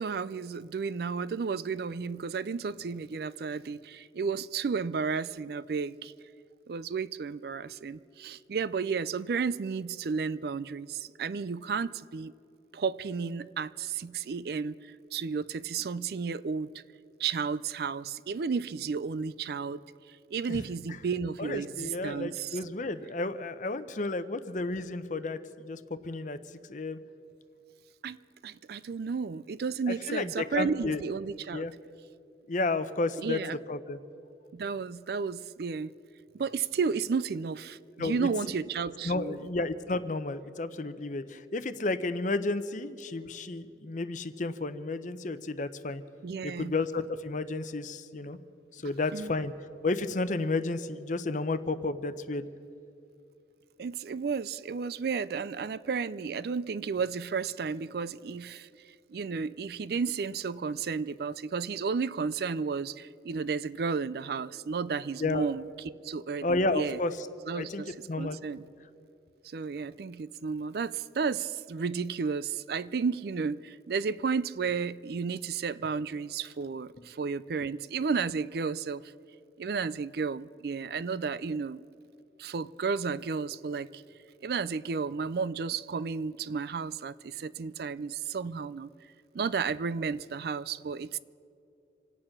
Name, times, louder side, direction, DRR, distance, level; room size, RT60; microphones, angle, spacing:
voice 1, 0.0-6.1 6.7-12.3 12.7-16.7 17.2-22.6 28.0-28.2 28.4-31.7 33.2-33.6 34.5-36.0 36.3-39.5 46.2-46.7 49.1-49.3 53.8-58.7 59.1-65.7 66.0-67.0 67.5-68.6 69.4-79.1 79.6-81.8 82.4-84.0 84.4-88.9 89.3-91.2, right 5 dB, 60° right, 0.4 m, -33 dB
voice 2, 21.4-26.4 26.7-27.0 29.9-31.0 31.5-31.7 32.5-33.4 33.7-34.0 38.0-38.3 39.0-46.0 46.4-48.4 48.7-49.5 49.8-52.4 65.2-65.5 66.4-67.3 67.5-68.4, left 2 dB, 45° left, 0.7 m, -32 dB
26.5 x 9.0 x 5.9 m
head